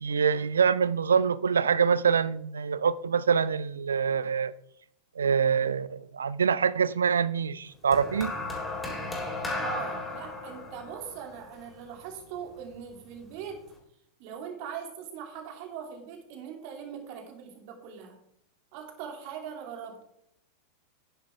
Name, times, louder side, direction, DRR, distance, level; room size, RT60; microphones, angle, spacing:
voice 1, 0.0-4.5 5.2-8.3, right 6 dB, 70° right, 0.5 m, -25 dB
sound 1, 7.9-12.3 13.3-13.5, left 2 dB, 10° left, 3.9 m, -35 dB
voice 2, 9.6-13.7 14.2-18.2 18.7-20.0, right 7 dB, 45° right, 2.7 m, -41 dB
10.5 x 10.5 x 3.5 m
figure-of-eight pair, 90°, 0 cm